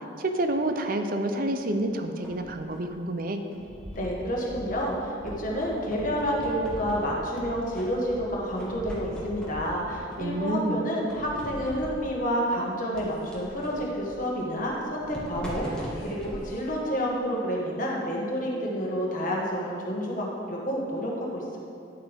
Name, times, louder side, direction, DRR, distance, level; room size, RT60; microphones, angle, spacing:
voice 1, 0.2-3.4 10.2-10.8, right 1 dB, 45° right, 6 dB, 0.6 m, -28 dB
sound 1, 1.8-3.0 3.5-4.9 5.3-7.4 7.7-8.3 8.6-10.5 11.1-12.2 12.9-17.4, equal, 5° left, 1.3 m, -42 dB
sound 2, 3.7-10.1, equal, 85° right, 2.2 m, -44 dB
voice 2, 3.9-21.6, equal, 40° left, -3 dB, 1.5 m, -29 dB
10.5 x 7.4 x 3.6 m, 2.6 s
head